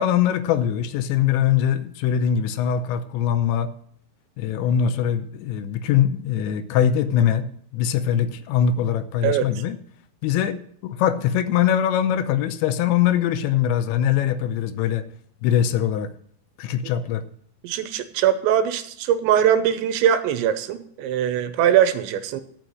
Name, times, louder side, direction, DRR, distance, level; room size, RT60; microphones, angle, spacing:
voice 1, 0.0-3.7 4.4-7.5 7.7-9.8 10.2-15.1 15.4-16.1 16.6-17.2, left 9 dB, 85° left, 3.0 m, -22 dB
voice 2, 17.6-22.4, right 10 dB, 90° right, 3.0 m, -21 dB
13.0 x 6.0 x 7.6 m
omnidirectional pair, 5.2 m